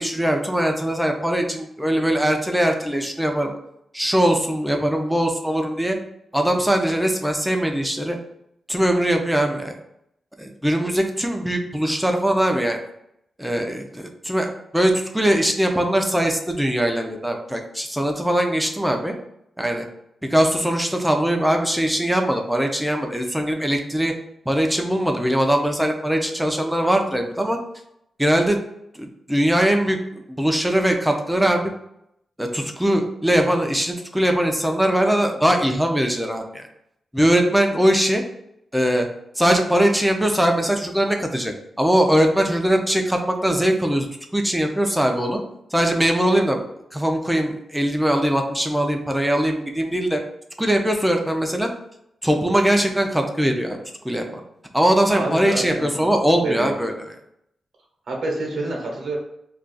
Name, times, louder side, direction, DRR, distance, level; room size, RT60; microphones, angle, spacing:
voice 1, 0.0-3.5 3.9-6.0 6.3-8.2 8.7-9.7 10.4-12.8 13.4-19.1 19.6-19.9 20.3-24.1 24.5-27.6 28.2-28.6 28.9-31.7 32.4-36.7 37.1-38.2 38.7-39.1 39.4-44.1 44.3-45.4 45.7-46.6 46.9-50.2 50.6-51.7 52.2-53.8 54.0-54.2 54.7-56.9, right 1 dB, 5° right, 3 dB, 0.4 m, -21 dB
voice 2, 55.1-56.0 56.4-56.7 58.1-59.2, right 2 dB, 75° right, -2 dB, 0.9 m, -27 dB
2.4 x 2.4 x 3.8 m, 0.78 s
wide cardioid pair, 110°, 0 cm